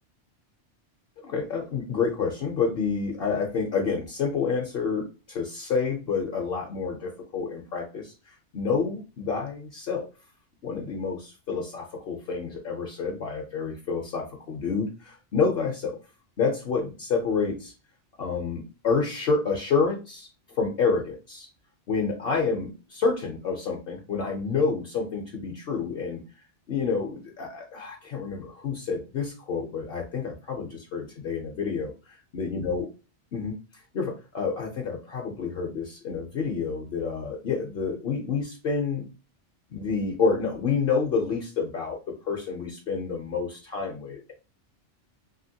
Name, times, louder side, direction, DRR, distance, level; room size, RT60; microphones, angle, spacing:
voice 1, 1.2-10.1 10.6-16.0 16.4-17.7 18.2-20.3 20.6-21.5 21.9-26.2 26.7-32.9 33.3-33.6 33.9-39.1 39.7-44.3, left 5 dB, 60° left, 0 dB, 0.8 m, -28 dB
2.8 x 2.8 x 2.7 m, 0.32 s
omnidirectional pair, 1.2 m